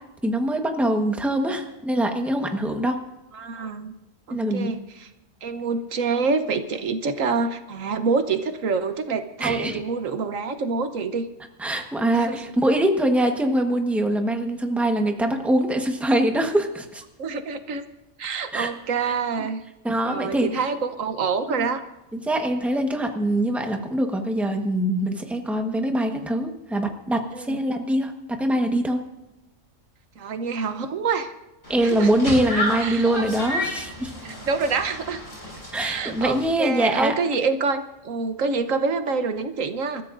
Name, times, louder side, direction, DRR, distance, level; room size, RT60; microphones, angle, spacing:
voice 1, 0.2-3.0 4.3-4.8 9.4-9.8 11.6-17.0 18.5-18.7 19.4-19.5 19.8-20.6 21.5-21.7 22.2-29.0 31.7-34.1 35.7-37.1, right 1 dB, ahead, 4 dB, 1.2 m, -23 dB
voice 2, 3.3-3.9 4.3-5.1 5.4-11.3 12.1-12.4 17.2-17.8 18.2-19.6 20.0-21.8 27.3-27.6 30.2-31.3 31.8-32.1 32.8-33.2 34.2-35.2 35.8-40.0, right 4 dB, 80° right, 9 dB, 1.4 m, -26 dB
sound 1, 31.6-36.5, left 1 dB, 80° left, 6.0 m, -31 dB
28.0 x 13.5 x 2.6 m, 0.96 s
omnidirectional pair, 1.3 m